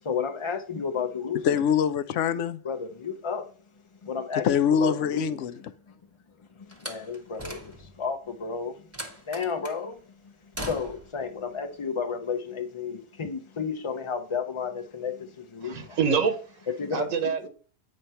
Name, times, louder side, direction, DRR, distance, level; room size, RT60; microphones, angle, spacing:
voice 1, 0.0-1.6 2.6-3.5 4.0-5.9 6.6-8.9 9.3-16.0 16.7-17.3, left 6 dB, 45° left, 0.4 m, -32 dB
voice 2, 1.4-2.6 4.4-5.5, left 7 dB, 75° left, 0.9 m, -24 dB
Slam, 6.7-8.1 8.9-9.8 10.5-11.2, right 1 dB, 15° right, 1.0 m, -39 dB
voice 3, 15.6-16.6 16.9-17.5, right 6 dB, 90° right, 1.4 m, -26 dB
8.8 x 3.2 x 5.5 m
omnidirectional pair, 1.3 m